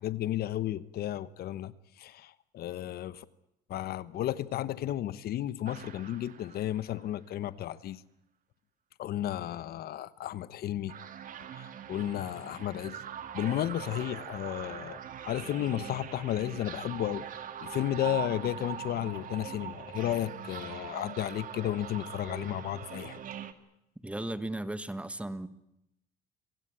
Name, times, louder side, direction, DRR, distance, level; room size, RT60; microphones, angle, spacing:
voice 1, 0.0-3.2 3.7-8.0 9.0-10.9 11.5-13.0 13.3-15.0 15.2-17.2 17.6-23.2, left 12 dB, 65° left, 1.1 m, -33 dB
sound 1, 5.7-7.1 10.9-23.5, right 9 dB, 55° right, 2.0 m, -42 dB
voice 2, 24.0-25.5, right 1 dB, 5° right, 1.6 m, -36 dB
26.0 x 17.0 x 9.9 m
cardioid pair, 110°, 17 cm